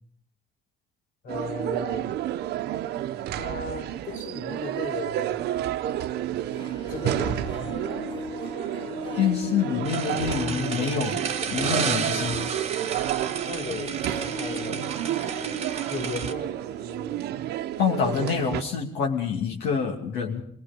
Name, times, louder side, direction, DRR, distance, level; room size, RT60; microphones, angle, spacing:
voice 1, 1.2-2.2 3.4-5.4 6.9-7.8 13.5-15.0 15.9-16.5, left 4 dB, 55° left, 5 dB, 3.7 m, -36 dB
sound 1, 1.3-18.6, right 12 dB, 75° right, 0.9 m, -31 dB
Harp, 6.4-17.4 17.6-17.7, left 3 dB, 30° left, 2.6 m, -39 dB
voice 2, 9.1-11.2 11.5-12.5 17.8-20.4, left 6 dB, 80° left, -1 dB, 2.6 m, -26 dB
sound 2, 9.8-16.3, right 6 dB, 40° right, 1.4 m, -32 dB
23.0 x 21.5 x 5.3 m, 0.67 s
cardioid pair, 110°, 17 cm